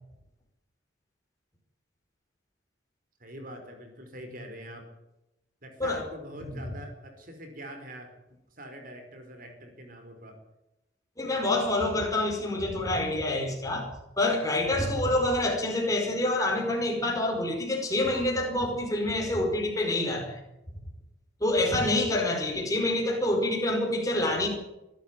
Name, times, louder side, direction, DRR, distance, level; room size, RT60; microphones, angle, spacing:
voice 1, 3.2-4.9 5.6-8.1 8.6-10.4, equal, 45° right, 5 dB, 4.6 m, -44 dB
voice 2, 11.2-20.4 21.4-24.5, left 1 dB, 15° left, 1 dB, 5.0 m, -27 dB
24.0 x 12.5 x 9.6 m, 0.92 s
head